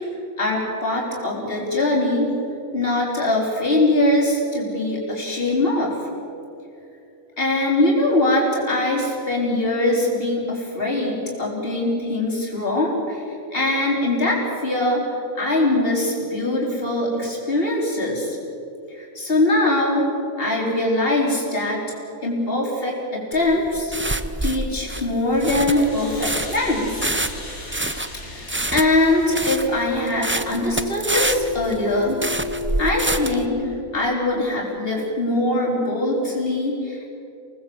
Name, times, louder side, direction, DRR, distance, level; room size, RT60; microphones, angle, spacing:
voice 1, 0.4-2.3 2.7-5.9 7.4-13.2 13.5-15.0 15.3-18.4 18.9-20.0 20.4-22.0 22.2-23.9 24.4-27.1 28.2-32.2 32.8-37.1, left 1 dB, 40° left, -2 dB, 4.6 m, -22 dB
sound 1, 23.3-33.5, right 2 dB, 15° right, 0.5 m, -27 dB
sound 2, 25.3-33.8, left 3 dB, 75° left, 3.6 m, -34 dB
26.0 x 19.0 x 7.9 m, 2.6 s
omnidirectional pair, 1.5 m